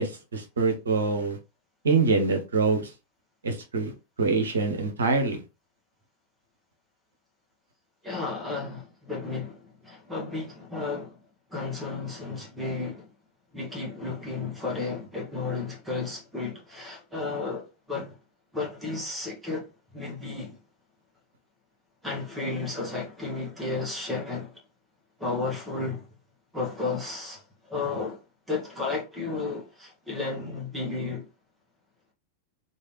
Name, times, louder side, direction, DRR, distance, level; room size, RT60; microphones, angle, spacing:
voice 1, 0.0-1.4 1.8-2.9 3.4-3.9 4.2-5.4, right 4 dB, 70° right, 0.8 m, -25 dB
voice 2, 8.0-11.2 11.5-13.1 13.5-18.2 18.5-20.6 22.0-24.6 25.2-26.0 26.5-28.2 28.5-31.3, left 3 dB, 5° right, 1.1 m, -33 dB
3.2 x 2.5 x 3.0 m
figure-of-eight pair, 90°, 0 cm